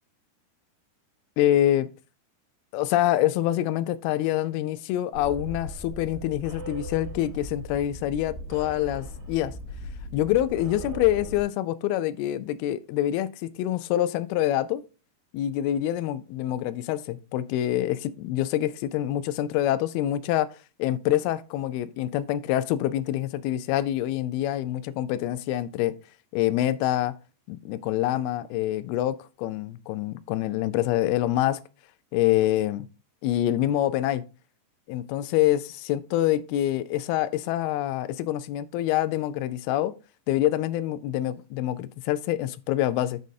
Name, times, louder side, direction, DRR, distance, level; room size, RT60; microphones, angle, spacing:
voice 1, 1.4-1.9 2.7-9.5 10.1-14.8 15.3-20.5 20.8-26.0 26.3-27.1 27.5-31.6 32.1-32.9 33.2-34.2 34.9-39.9 40.3-43.2, left 13 dB, 80° left, 2.4 m, -26 dB
sound 1, 5.1-11.4, equal, 65° right, 4.3 m, -38 dB
13.5 x 5.4 x 2.7 m
omnidirectional pair, 4.7 m